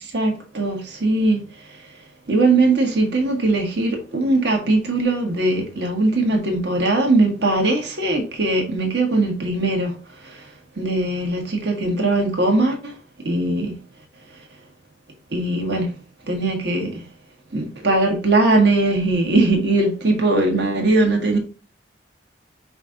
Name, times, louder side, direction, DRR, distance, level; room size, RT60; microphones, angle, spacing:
voice 1, 0.0-1.4 2.3-9.9 10.2-10.4 10.8-12.9 13.2-13.7 15.3-15.9 16.3-17.0 17.5-21.4, right 2 dB, 65° right, 1.3 m, -20 dB
5.1 x 2.4 x 3.8 m
head